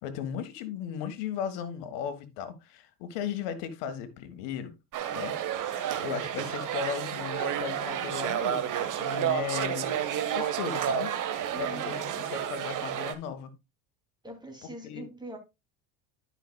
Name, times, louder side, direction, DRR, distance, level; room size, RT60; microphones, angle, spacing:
voice 1, 0.0-4.7 5.1-5.3 5.7-10.0 10.3-11.1 11.6-13.5 14.8-15.0, left 8 dB, 65° left, 1.5 m, -36 dB
sound 1, 4.9-13.1, right 9 dB, 45° right, 1.1 m, -31 dB
voice 2, 11.5-12.3 14.2-15.4, right 2 dB, 10° right, 2.5 m, -43 dB
11.5 x 5.8 x 2.2 m
hypercardioid pair, 85°, 44 cm